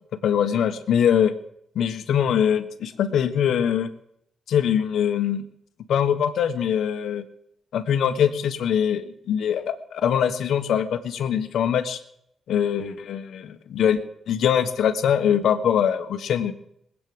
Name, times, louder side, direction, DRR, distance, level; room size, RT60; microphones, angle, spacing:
voice 1, 0.2-1.3 1.7-3.9 4.5-5.4 5.9-7.2 7.7-12.0 12.5-14.0 14.3-16.5, left 8 dB, 80° left, 9 dB, 1.3 m, -22 dB
20.0 x 8.6 x 7.8 m, 0.74 s
cardioid pair, 80°, 0 cm